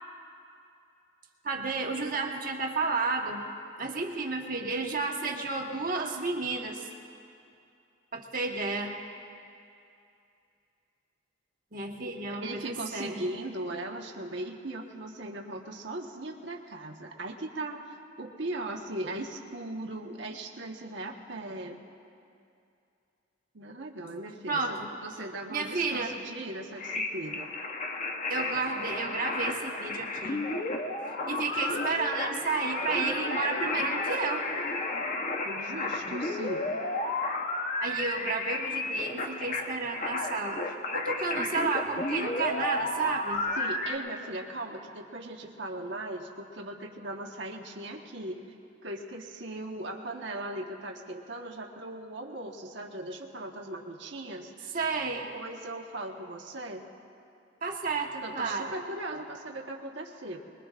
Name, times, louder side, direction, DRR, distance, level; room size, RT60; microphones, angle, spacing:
voice 1, 1.4-3.4 3.8-6.9 8.1-8.9 11.7-13.2 24.5-24.9 25.5-26.2 28.3-30.5 31.3-34.4 37.8-43.4 54.7-55.3 57.6-58.7, right 4 dB, 45° right, 1 dB, 1.4 m, -32 dB
voice 2, 12.4-21.8 23.5-27.5 35.4-36.7 43.6-48.4 48.8-54.8 55.3-56.8 58.2-60.4, right 1 dB, 65° right, 1 dB, 1.4 m, -38 dB
sound 1, 26.8-43.9, left 2 dB, 40° left, 0.9 m, -32 dB
24.0 x 22.0 x 2.5 m, 2.6 s
head